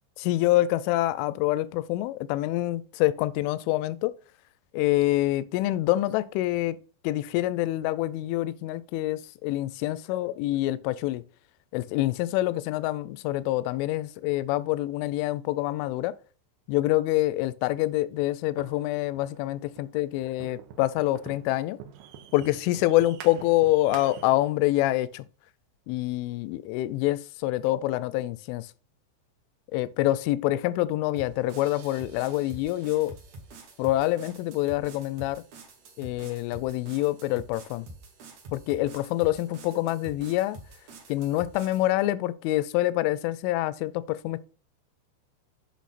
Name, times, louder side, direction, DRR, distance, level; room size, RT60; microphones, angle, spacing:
voice 1, 0.2-4.1 4.7-6.8 7.0-11.2 11.7-16.2 16.7-21.8 22.3-25.3 25.9-28.7 29.7-33.1 33.8-35.4 36.0-37.9 38.5-40.6 41.1-44.5, left 16 dB, 85° left, 2.9 m, -26 dB
sound 1, 18.6-24.5, right 8 dB, 80° right, 2.2 m, -46 dB
sound 2, 31.2-41.9, right 2 dB, 65° right, 1.8 m, -47 dB
8.3 x 5.9 x 4.1 m
omnidirectional pair, 5.7 m